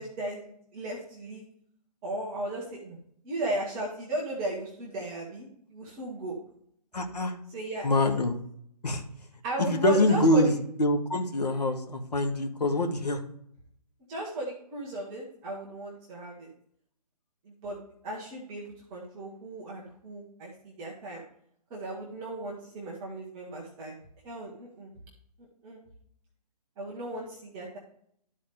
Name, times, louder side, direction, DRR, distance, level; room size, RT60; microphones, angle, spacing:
voice 1, 0.0-1.4 2.0-3.0 3.2-6.3 7.5-8.0 9.4-10.5 14.1-16.5 17.4-21.2 21.7-23.9 24.2-24.9 25.6-25.8 26.8-27.8, right 1 dB, 5° right, -4 dB, 0.3 m, -35 dB
voice 2, 6.9-7.3 7.8-8.4 8.8-9.0 9.6-13.2, left 1 dB, 75° left, 5 dB, 1.6 m, -25 dB
11.5 x 4.1 x 5.0 m, 0.67 s
hypercardioid pair, 155°, 21 cm